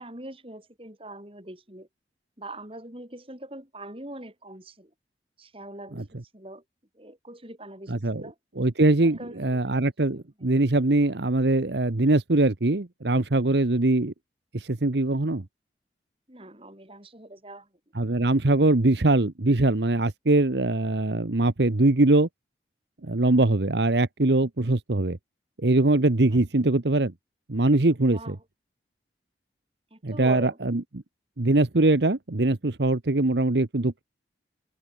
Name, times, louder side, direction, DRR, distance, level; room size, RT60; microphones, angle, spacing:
voice 1, 0.0-1.9 2.4-4.9 5.4-6.0 6.3-6.6 6.9-8.4 9.0-9.8 10.4-10.5 16.3-17.7 26.3-26.4 28.0-28.4 29.9-30.6, right 1 dB, 30° right, 5.2 m, -42 dB
voice 2, 7.9-8.2 8.6-14.1 14.5-15.4 17.9-22.3 23.0-25.2 25.6-27.1 27.5-28.4 30.0-30.8 31.4-34.0, right 2 dB, 70° right, 1.1 m, -22 dB
head